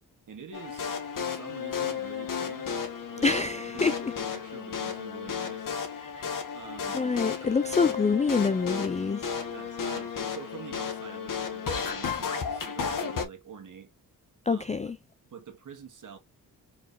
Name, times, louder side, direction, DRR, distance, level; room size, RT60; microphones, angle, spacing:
voice 1, 0.3-2.7 3.1-4.0 4.3-5.8 6.5-7.0 7.4-7.6 9.5-13.9 14.5-14.9 15.3-16.2, right 6 dB, 55° right, 1.6 m, -46 dB
sound 1, 0.5-13.3, left 6 dB, 55° left, 1.4 m, -33 dB
voice 2, 3.2-4.0 6.2-6.3 6.9-9.2 14.5-15.0, left 4 dB, 20° left, 0.3 m, -26 dB
4.9 x 4.0 x 2.6 m
wide cardioid pair, 130°, 38 cm